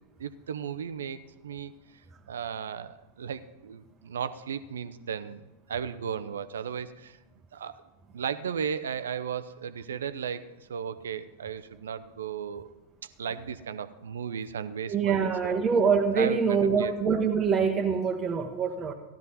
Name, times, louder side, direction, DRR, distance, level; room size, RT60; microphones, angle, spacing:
voice 1, 0.2-1.2 1.4-1.7 2.3-7.2 7.5-7.8 8.1-10.4 10.7-12.7 13.2-15.6 16.2-16.9, right 7 dB, 65° right, 12 dB, 0.7 m, -35 dB
voice 2, 14.9-18.9, right 6 dB, 20° right, 2 dB, 1.1 m, -25 dB
15.5 x 12.0 x 4.1 m, 1.1 s
figure-of-eight pair, 90°, 0 cm